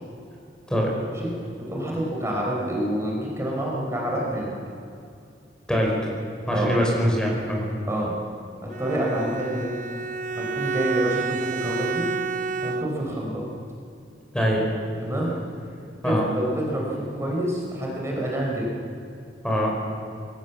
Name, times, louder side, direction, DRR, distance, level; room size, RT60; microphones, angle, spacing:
voice 1, 1.6-4.5 6.5-6.7 7.9-8.1 8.6-9.7 10.3-12.1 12.6-13.5 15.0-15.3 16.0-18.7, right 1 dB, 15° right, -3 dB, 4.9 m, -27 dB
voice 2, 5.7-6.1 6.5-7.7 14.3-14.6 16.0-16.3 19.4-19.7, equal, 5° left, -2 dB, 5.4 m, -23 dB
Bowed string instrument, 8.7-13.2, right 5 dB, 45° right, 0.6 m, -30 dB
28.0 x 22.0 x 7.3 m, 2.6 s
head